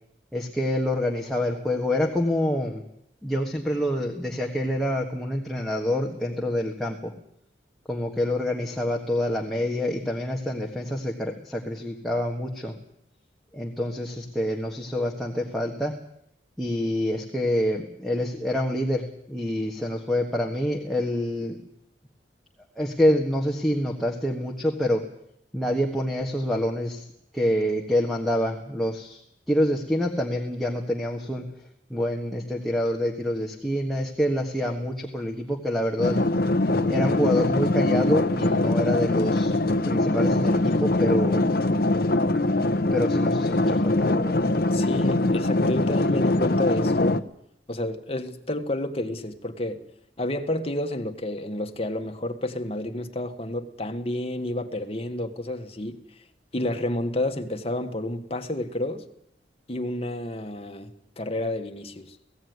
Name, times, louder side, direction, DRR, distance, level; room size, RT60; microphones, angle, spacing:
voice 1, 0.3-2.9 3.2-7.1 7.9-12.7 13.5-16.0 16.6-21.6 22.8-25.0 25.5-27.0 27.3-29.2 29.5-31.5 31.9-36.2 36.9-39.5 39.8-41.4 42.9-44.4 56.6-56.7, left 1 dB, ahead, -1 dB, 1.5 m, -26 dB
sound 1, 36.0-47.2, left 2 dB, 55° left, 0.9 m, -22 dB
voice 2, 44.7-47.2 47.7-49.8 50.2-56.0 56.5-59.0 59.7-62.2, left 1 dB, 35° left, 6 dB, 1.6 m, -30 dB
17.0 x 16.0 x 9.4 m, 0.74 s
head